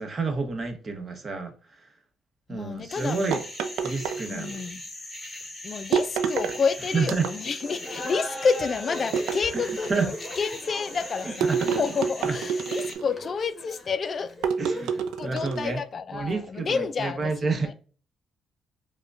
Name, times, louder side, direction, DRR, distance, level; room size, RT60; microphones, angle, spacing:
voice 1, 0.0-1.5 2.5-3.4 3.8-4.5 6.9-7.2 9.9-10.1 11.4-11.6 14.6-15.8 16.1-17.7, right 4 dB, 35° right, 0.9 m, -29 dB
voice 2, 2.5-3.2 4.3-4.8 5.6-9.9 10.4-14.3 15.2-17.7, left 5 dB, 45° left, 0.3 m, -29 dB
sound 1, 2.9-13.0, left 1 dB, 10° left, 1.2 m, -40 dB
sound 2, 3.3-4.7 5.9-6.6 7.0-7.7 9.1-10.0 11.4-13.2 14.4-15.7, right 6 dB, 90° right, 0.4 m, -28 dB
Laughter, 7.6-15.0, left 1 dB, 30° left, 1.0 m, -40 dB
4.8 x 2.2 x 2.4 m
cardioid pair, 90°, 0 cm